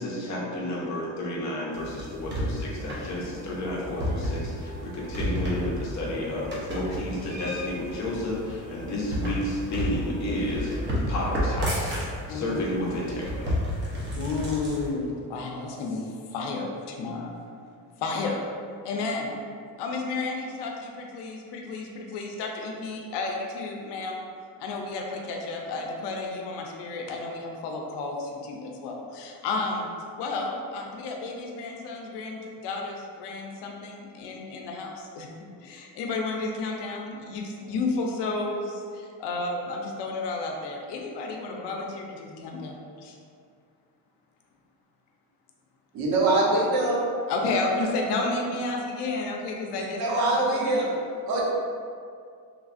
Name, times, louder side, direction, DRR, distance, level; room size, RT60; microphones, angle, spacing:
voice 1, 0.0-10.7 11.1-12.0 12.3-13.6, left 1 dB, 45° left, -4 dB, 0.7 m, -31 dB
sound 1, 1.7-14.9, equal, 25° right, 0.7 m, -32 dB
voice 2, 12.3-12.9 14.1-17.4 18.0-18.4 18.8-19.3 19.8-24.2 24.6-29.9 30.2-35.3 35.6-43.2 47.3-50.2 50.5-50.9, left 3 dB, 80° left, 1 dB, 0.6 m, -32 dB
voice 3, 45.9-47.0 50.0-50.9 51.3-51.4, right 2 dB, 65° right, -4 dB, 0.8 m, -23 dB
3.2 x 2.4 x 2.4 m, 2.3 s
cardioid pair, 135°, 41 cm